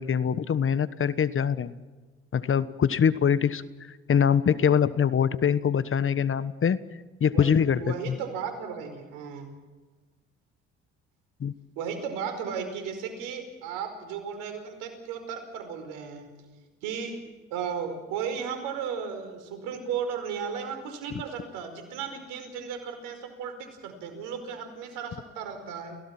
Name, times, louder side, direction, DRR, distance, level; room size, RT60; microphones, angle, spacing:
voice 1, 0.0-1.7 2.3-6.8 7.2-8.2 11.4-11.5, left 7 dB, 40° left, 15 dB, 1.3 m, -24 dB
voice 2, 7.3-9.5 11.8-16.3 16.8-17.2 17.5-26.0, right 6 dB, 80° right, 7 dB, 5.0 m, -35 dB
29.0 x 17.5 x 6.1 m, 1.3 s
supercardioid pair, 65°, 31 cm